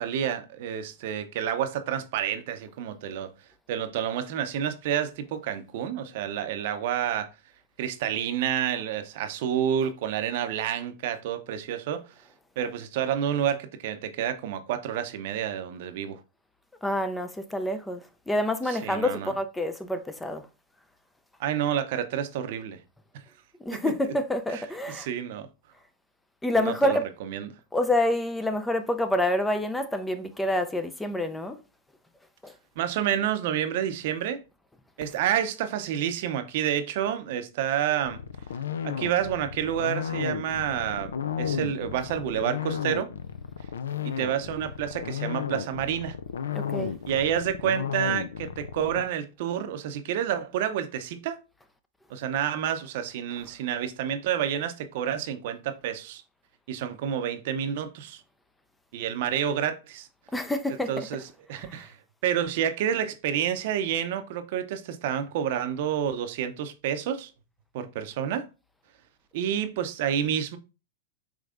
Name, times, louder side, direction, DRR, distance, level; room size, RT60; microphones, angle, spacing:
voice 1, 0.0-3.3 3.7-7.3 7.8-12.0 12.6-16.2 18.8-19.3 21.4-22.8 23.7-23.9 24.5-24.6 24.9-25.5 26.5-27.5 32.8-34.4 35.0-38.2 38.8-43.1 44.0-46.2 47.1-51.4 52.1-56.2 56.7-58.2 58.9-60.1 60.9-61.2 61.5-62.0 62.2-67.3 67.7-68.5 69.3-70.6, right 9 dB, 60° right, 0.6 m, -29 dB
voice 2, 16.8-20.5 23.6-25.1 26.4-27.1 27.7-31.6 32.4-32.5 46.5-46.9 53.4-53.5 60.3-61.2 61.5-61.9, left 1 dB, 10° left, 0.4 m, -28 dB
sound 1, 38.1-49.0, left 7 dB, 85° left, 0.3 m, -33 dB
5.0 x 3.2 x 2.4 m
hypercardioid pair, 115°, 0 cm